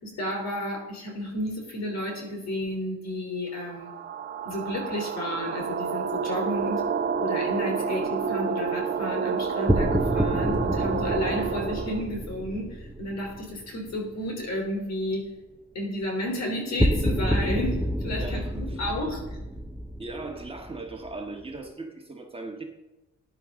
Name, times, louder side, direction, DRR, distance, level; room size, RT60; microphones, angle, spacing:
voice 1, 0.0-3.9 4.5-6.8 7.2-15.3 15.7-19.2, left 1 dB, 60° left, 1 dB, 3.6 m, -32 dB
sound 1, 3.7-12.1, right 6 dB, 35° right, 0.9 m, -29 dB
sound 2, 9.7-13.9 16.8-21.4, equal, 5° right, 0.7 m, -28 dB
voice 2, 18.2-18.8 20.0-22.6, right 2 dB, 20° right, 2 dB, 1.5 m, -38 dB
14.0 x 9.8 x 3.7 m, 1.0 s
cardioid pair, 90°, 30 cm